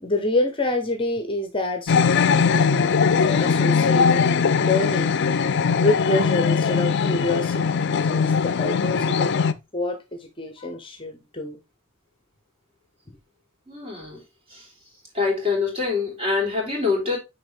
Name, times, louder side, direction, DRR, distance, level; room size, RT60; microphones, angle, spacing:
voice 1, 0.0-5.2 5.8-9.3 9.7-11.6, left 2 dB, 25° left, 0.8 m, -27 dB
Tatiana Avila, 1.9-9.5, left 5 dB, 55° left, 0.4 m, -20 dB
voice 2, 13.7-14.2 14.5-14.7 15.1-17.2, left 4 dB, 30° right, 3.6 m, -25 dB
6.9 x 4.7 x 3.4 m
head